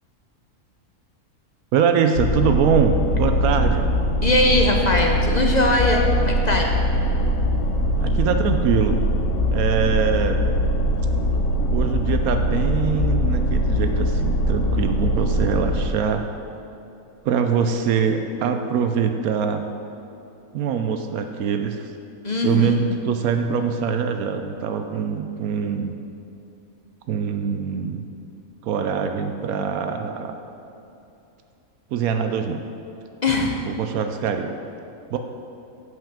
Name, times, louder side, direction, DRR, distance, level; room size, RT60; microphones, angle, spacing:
voice 1, 1.7-3.9 8.0-9.0 9.5-10.4 11.7-16.2 17.2-19.7 20.5-21.9 22.4-25.9 27.1-28.0 28.6-30.3 31.9-32.6 33.7-34.5 35.1-35.2, right 6 dB, 80° right, 6 dB, 1.0 m, -23 dB
sound 1, 2.2-15.9, equal, 70° left, 1.0 m, -22 dB
voice 2, 4.2-6.8 22.2-22.8 33.2-33.6, left 2 dB, 40° left, 2 dB, 0.6 m, -20 dB
7.8 x 5.7 x 7.2 m, 2.8 s
omnidirectional pair, 1.5 m